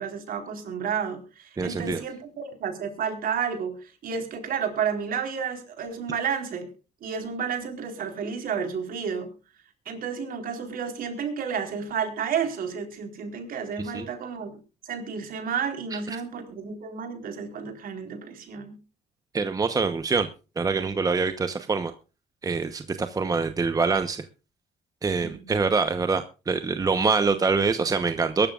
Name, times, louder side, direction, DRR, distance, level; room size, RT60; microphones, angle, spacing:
voice 1, 0.0-6.7 7.0-9.3 9.9-14.6 14.8-18.8 25.2-25.6, right 6 dB, 60° right, 5 dB, 4.3 m, -31 dB
voice 2, 1.6-2.0 13.9-14.0 15.9-16.2 19.3-20.3 20.6-21.9 22.4-24.3 25.0-28.5, right 4 dB, 20° right, 9 dB, 1.0 m, -25 dB
23.0 x 12.5 x 2.5 m, 0.32 s
cardioid pair, 110°, 17 cm